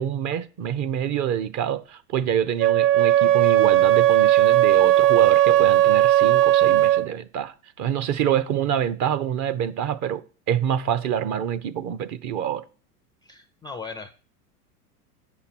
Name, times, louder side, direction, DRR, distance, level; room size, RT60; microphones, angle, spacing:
voice 1, 0.0-12.6, right 9 dB, 40° right, 0.7 m, -26 dB
Wind instrument woodwind instrument, 2.6-7.1, right 13 dB, 80° right, 0.6 m, -17 dB
voice 2, 13.2-14.1, left 4 dB, 10° left, 0.4 m, -38 dB
8.3 x 5.8 x 6.0 m
hypercardioid pair, 100°, 46 cm